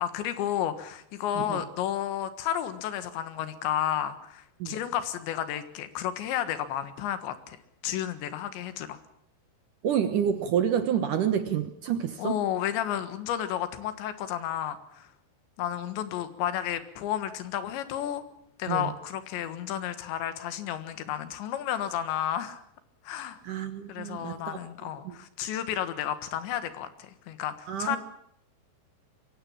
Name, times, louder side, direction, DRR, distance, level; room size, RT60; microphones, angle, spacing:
voice 1, 0.0-7.6 7.8-9.0 12.2-15.1 15.6-18.2 18.6-22.6 23.1-23.4 23.9-28.0, left 11 dB, 90° left, 11 dB, 3.8 m, -32 dB
voice 2, 9.8-12.4 18.7-18.9 23.4-24.6 25.0-25.1 27.7-28.0, right 9 dB, 65° right, 9 dB, 2.2 m, -28 dB
23.5 x 16.5 x 8.7 m, 0.71 s
omnidirectional pair, 5.0 m